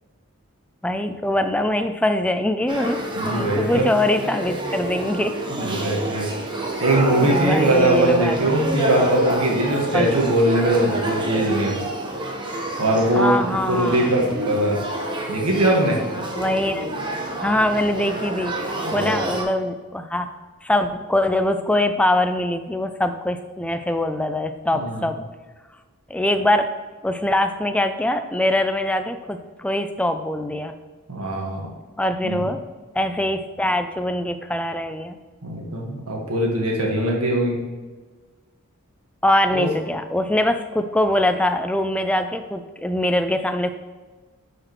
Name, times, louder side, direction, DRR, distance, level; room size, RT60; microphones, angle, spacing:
voice 1, 0.8-3.0 3.3-5.3 5.9-6.0 6.6-6.7 7.2-8.4 9.9-10.1 13.1-14.1 16.3-16.9 17.4-20.3 20.6-25.2 26.1-26.7 27.0-30.7 32.0-32.6 32.9-35.2 39.2-43.7, left 1 dB, 5° left, 8 dB, 0.3 m, -23 dB
Male speech man speaking / Child speech kid speaking / Conversation, 2.7-19.4, right 1 dB, 20° right, 0.9 m, -28 dB
voice 2, 3.2-4.0 5.5-6.3 6.8-11.8 12.8-14.8 15.3-16.0 18.9-19.1 24.7-25.1 31.1-31.6 32.2-32.5 35.4-37.6 39.5-39.7, right 1 dB, 90° right, -1 dB, 1.6 m, -21 dB
10.0 x 5.0 x 3.1 m, 1.3 s
head